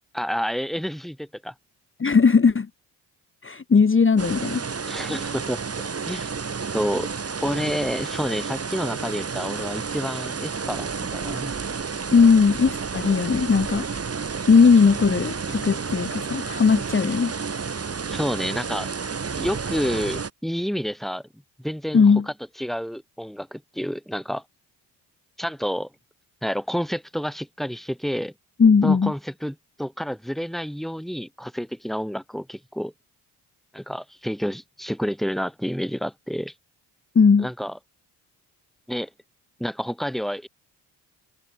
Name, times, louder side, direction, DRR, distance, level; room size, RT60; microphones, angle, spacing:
voice 1, 0.1-1.5 4.9-5.6 6.0-6.3 6.7-11.5 18.1-18.9 19.4-21.2 21.6-22.0 22.6-24.4 25.4-25.9 26.4-28.3 28.8-32.9 33.7-36.5 37.4-37.7 38.9-39.1 39.6-40.5, equal, ahead, 3.9 m, -29 dB
voice 2, 2.0-2.7 3.4-4.6 12.1-13.9 14.5-17.3 21.9-22.3 28.6-29.1 37.1-37.5, left 5 dB, 25° left, 1.3 m, -18 dB
sound 1, 4.2-20.3, right 5 dB, 30° right, 1.9 m, -31 dB
hypercardioid pair, 50°, 46 cm